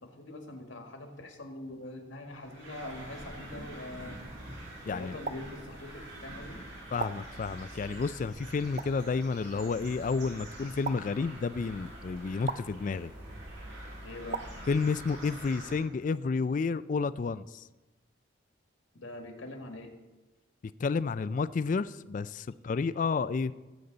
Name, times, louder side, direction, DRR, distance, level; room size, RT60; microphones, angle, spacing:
voice 1, 0.0-4.2 4.9-6.6 14.0-14.4 19.0-19.9, left 2 dB, 80° left, 4 dB, 1.7 m, -43 dB
sound 1, 2.3-15.8, right 1 dB, 65° right, 3.7 m, -45 dB
sound 2, 5.2-5.4 7.0-7.1 8.8-8.9 10.8-11.0 12.4-12.6 14.3-14.5, right 5 dB, 40° right, 0.4 m, -34 dB
voice 2, 6.9-13.1 14.7-17.6 20.8-23.5, left 4 dB, 40° left, 16 dB, 0.3 m, -31 dB
17.5 x 8.1 x 3.9 m, 1.2 s
head